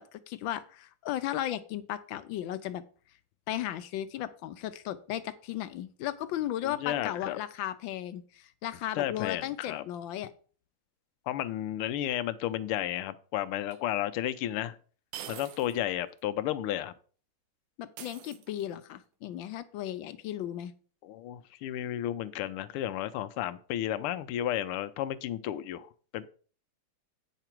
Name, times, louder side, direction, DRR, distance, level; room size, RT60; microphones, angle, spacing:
voice 1, 0.0-2.8 3.5-10.3 17.8-20.7, left 12 dB, 75° left, 12 dB, 1.3 m, -35 dB
voice 2, 6.6-7.4 8.9-9.8 11.3-14.8 15.3-16.9 21.0-26.3, left 12 dB, 90° left, 12 dB, 1.5 m, -33 dB
sound 1, 13.7-13.8 15.1-15.8 16.2-16.3 18.0-18.9, right 10 dB, 80° right, 1.5 m, -45 dB
9.0 x 5.9 x 4.5 m, 0.41 s
omnidirectional pair, 2.4 m